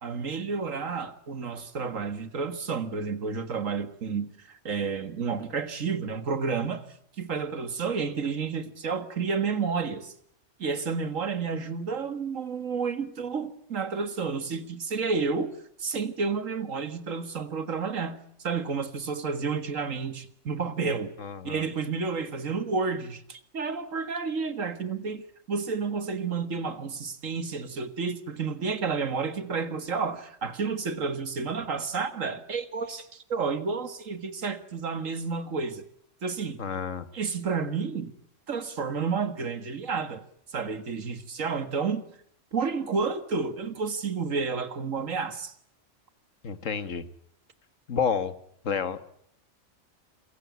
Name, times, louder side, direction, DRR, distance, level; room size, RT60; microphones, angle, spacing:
voice 1, 0.0-6.9 7.2-10.1 10.6-15.5 15.8-21.1 21.4-35.8 36.2-36.6 37.1-38.1 38.5-40.2 40.5-42.0 42.5-45.5, right 5 dB, 90° right, 11 dB, 2.1 m, -30 dB
voice 2, 21.2-21.7 36.6-37.1 46.4-47.0 47.9-48.3 48.6-49.0, left 6 dB, 75° left, 13 dB, 1.8 m, -29 dB
27.0 x 15.5 x 9.4 m, 0.68 s
omnidirectional pair, 1.3 m